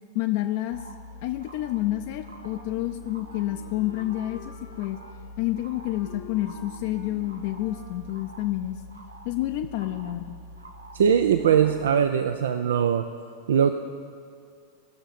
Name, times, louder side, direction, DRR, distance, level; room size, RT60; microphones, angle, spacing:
voice 1, 0.1-0.8 1.2-5.0 5.4-8.8 9.2-10.4, left 15 dB, 50° left, 6 dB, 0.5 m, -29 dB
sound 1, 0.7-11.9, equal, 85° right, 0.8 m, -45 dB
Wind instrument woodwind instrument, 2.2-8.1, left 3 dB, 80° left, 1.5 m, -48 dB
voice 2, 10.9-13.1 13.5-13.7, right 8 dB, 70° right, 9 dB, 0.4 m, -21 dB
18.5 x 6.7 x 4.2 m, 2.3 s
figure-of-eight pair, 90°, 0 cm